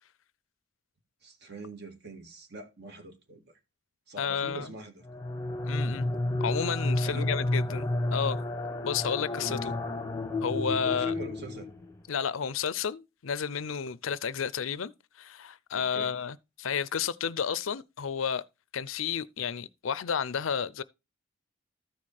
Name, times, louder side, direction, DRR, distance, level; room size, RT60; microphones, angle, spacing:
voice 1, 1.2-3.5 4.1-5.1 7.0-7.3 9.5-9.7 10.8-11.7 15.7-16.2, right 1 dB, 50° right, 1.9 m, -43 dB
voice 2, 4.2-4.7 5.6-6.1 6.4-8.4 8.8-9.7 10.4-11.1 12.1-14.9 15.2-18.4 18.7-20.8, left 7 dB, 75° left, 0.5 m, -31 dB
sound 1, 5.0-12.0, left 2 dB, 15° left, 0.9 m, -31 dB
13.5 x 4.8 x 4.3 m
head